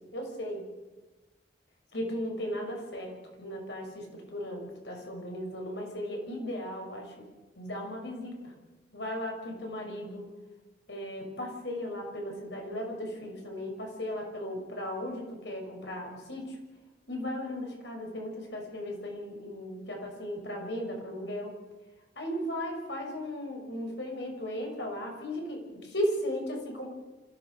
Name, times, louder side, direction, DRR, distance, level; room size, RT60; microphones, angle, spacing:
voice 1, 0.1-0.6 1.9-7.1 7.6-8.5 8.9-10.2 10.9-16.6 17.1-21.5 22.2-26.9, equal, 85° left, 1 dB, 6.1 m, -36 dB
26.5 x 16.0 x 6.5 m, 1.2 s
head